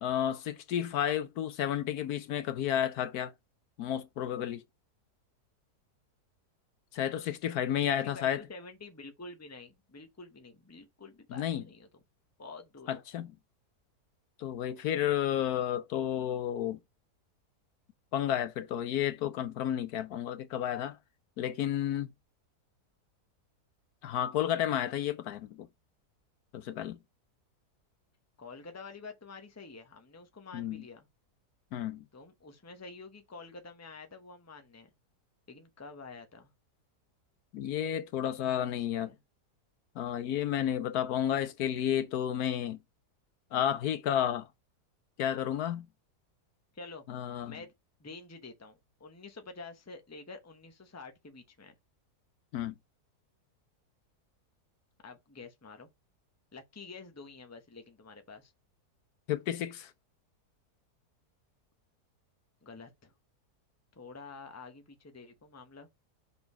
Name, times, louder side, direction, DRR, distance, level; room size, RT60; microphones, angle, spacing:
voice 1, 0.0-3.3 3.8-4.6 6.9-8.4 11.3-11.6 12.9-13.3 14.4-16.8 18.1-21.0 21.4-22.1 24.0-25.7 26.5-27.0 30.5-30.8 31.7-32.0 37.5-39.1 40.0-42.8 43.5-44.5 45.2-45.8 47.1-47.5 52.5-52.7 59.3-59.9, left 10 dB, 75° left, 1.1 m, -31 dB
voice 2, 7.8-11.9 12.4-13.0 28.4-31.1 32.1-34.9 35.5-36.5 38.4-39.2 46.7-47.0 47.5-47.7 48.0-51.7 55.0-55.9 56.5-58.5 62.6-63.1 63.9-65.9, left 3 dB, 10° left, 0.8 m, -48 dB
5.4 x 4.3 x 4.5 m
omnidirectional pair, 1.7 m